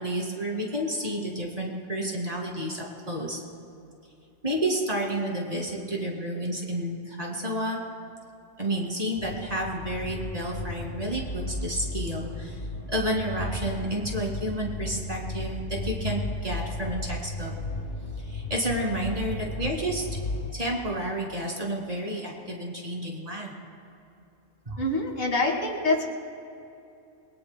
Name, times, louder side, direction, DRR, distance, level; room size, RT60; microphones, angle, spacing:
voice 1, 0.0-3.4 4.4-7.8 8.6-12.6 12.9-17.5 18.2-20.1 20.5-23.5 24.7-24.8, right 1 dB, 30° right, -1 dB, 2.5 m, -30 dB
sound 1, 9.2-20.5, left 2 dB, 45° left, 1.7 m, -34 dB
voice 2, 24.8-26.0, left 2 dB, 65° left, 0 dB, 2.2 m, -25 dB
27.5 x 21.0 x 2.2 m, 2.7 s
omnidirectional pair, 1.3 m